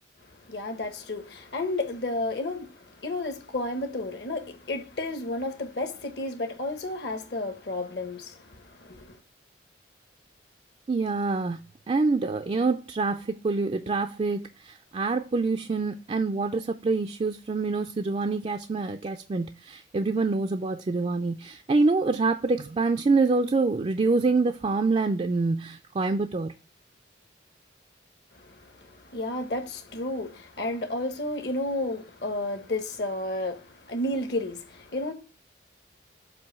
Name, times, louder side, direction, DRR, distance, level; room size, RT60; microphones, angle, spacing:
voice 1, 0.5-9.2 28.3-35.1, left 2 dB, 60° left, 1.1 m, -32 dB
voice 2, 10.9-11.6 11.9-26.5, right 3 dB, 30° right, 0.3 m, -26 dB
7.6 x 2.6 x 5.5 m
head